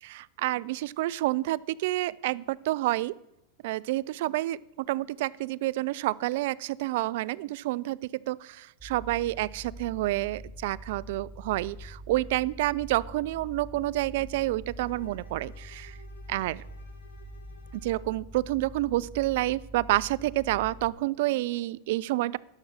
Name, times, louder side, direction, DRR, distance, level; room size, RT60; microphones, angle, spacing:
voice 1, 0.0-3.1 3.6-8.0 8.3-16.0 16.3-16.6 17.7-22.4, right 17 dB, 65° right, 21 dB, 0.3 m, -29 dB
sound 1, 8.8-20.9, equal, 10° right, 2.2 m, -45 dB
Bowed string instrument, 14.8-18.2, left 5 dB, 80° left, 2.3 m, -57 dB
11.5 x 6.0 x 6.6 m, 0.87 s
hypercardioid pair, 100°, 0 cm